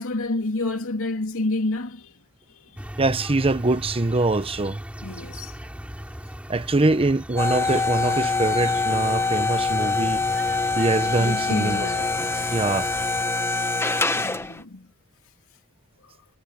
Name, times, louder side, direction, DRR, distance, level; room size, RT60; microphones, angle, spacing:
voice 1, 0.0-2.2 2.5-2.8 5.0-5.6 11.2-12.1 14.1-14.9, left 2 dB, 65° left, 2.6 m, -29 dB
sound 1, 2.8-13.2, equal, 5° right, 6.9 m, -39 dB
voice 2, 3.0-4.8 6.5-10.2 10.8-11.9 12.4-12.9, right 2 dB, 25° right, 0.9 m, -23 dB
sound 2, 7.4-14.6, left 3 dB, 10° left, 1.0 m, -24 dB
head